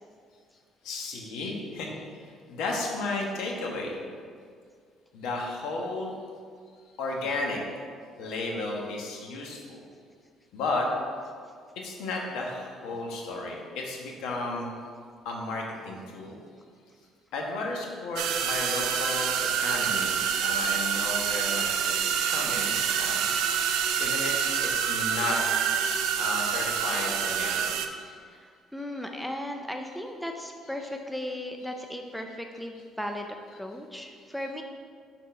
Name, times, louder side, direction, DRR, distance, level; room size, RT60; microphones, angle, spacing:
voice 1, 0.8-4.0 5.1-6.1 7.0-7.6 8.2-9.8 10.5-10.9 11.7-14.7 15.2-16.4 17.3-23.3 24.0-24.3 24.7-25.4 26.2-27.7 28.0-28.1 29.0-29.1 30.8-30.9 34.4-34.5, left 2 dB, 80° left, 0 dB, 1.2 m, -33 dB
sound 1, 18.2-27.9, right 8 dB, 85° right, 0.5 m, -27 dB
voice 2, 28.0-34.6, left 1 dB, ahead, 3 dB, 0.4 m, -37 dB
6.2 x 4.1 x 5.6 m, 2.1 s
cardioid pair, 170°, 0 cm